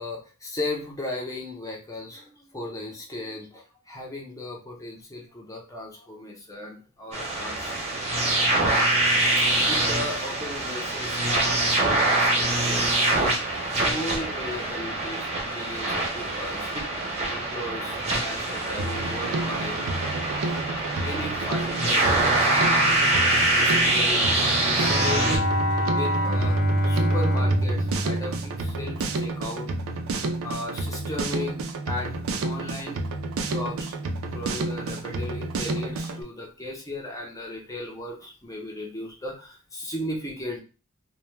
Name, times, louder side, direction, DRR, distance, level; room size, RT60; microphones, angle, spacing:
voice 1, 0.0-7.7 8.2-8.9 9.3-13.4 13.8-16.7 17.3-19.8 20.8-24.4 24.6-25.4 25.9-26.6 26.8-29.7 30.4-31.6 31.9-33.0 33.4-34.0 34.2-40.6, left 1 dB, 15° left, 0 dB, 0.6 m, -36 dB
sound 1, 7.1-25.4, right 2 dB, 30° right, 0.7 m, -24 dB
Drum kit, 18.8-36.2, right 2 dB, 65° right, 0.4 m, -31 dB
Bowed string instrument, 24.8-29.2, equal, 75° left, 0.8 m, -25 dB
2.2 x 2.1 x 3.1 m, 0.33 s
head